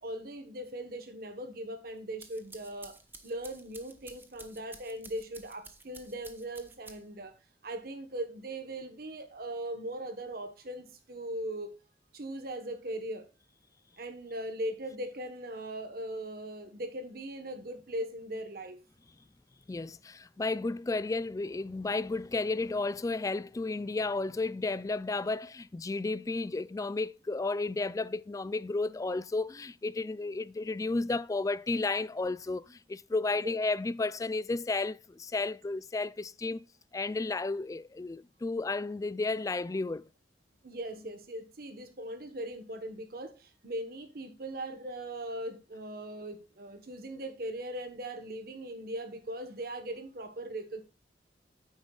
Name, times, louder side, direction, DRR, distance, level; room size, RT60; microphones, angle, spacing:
voice 1, 0.0-3.0 3.2-7.4 7.6-11.7 12.1-13.3 14.0-18.8 33.3-33.6 40.6-50.8, right 1 dB, 60° right, 1.2 m, -39 dB
sound 1, 2.0-7.3, right 3 dB, 10° right, 0.9 m, -52 dB
voice 2, 19.7-36.6 36.9-40.0, left 3 dB, 20° left, 0.3 m, -33 dB
9.7 x 8.9 x 2.3 m
head